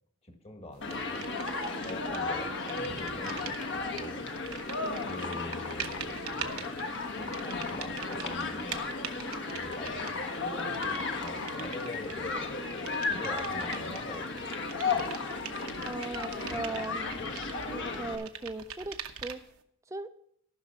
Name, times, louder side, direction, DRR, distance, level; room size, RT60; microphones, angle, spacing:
voice 1, 0.2-1.3 1.8-4.3 5.0-6.7 7.2-8.9 9.5-14.5 14.7-15.2 16.5-16.6, left 2 dB, 30° left, 5 dB, 1.5 m, -44 dB
Human group actions, 0.8-18.1, left 3 dB, 55° left, 1.3 m, -34 dB
sound 1, 0.9-2.3 2.6-19.6, right 9 dB, 80° right, 1.0 m, -44 dB
voice 2, 15.8-17.2 17.7-19.0 19.2-19.4 19.9-20.2, right 2 dB, 15° right, 10 dB, 0.4 m, -38 dB
14.5 x 6.3 x 5.5 m, 0.68 s
head